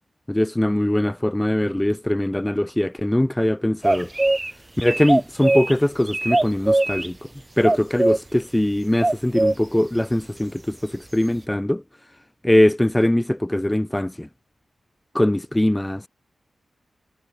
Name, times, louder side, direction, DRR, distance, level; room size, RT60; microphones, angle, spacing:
voice 1, 0.3-4.1 4.8-7.3 7.6-11.8 12.4-14.3 15.1-16.1, left 1 dB, 10° left, 4.2 m, -21 dB
sound 1, 3.8-4.5 4.8-5.7 6.1-7.1 7.6-8.2 9.0-9.5, right 2 dB, 20° right, 1.3 m, -20 dB
wide cardioid pair, 90°, 0 cm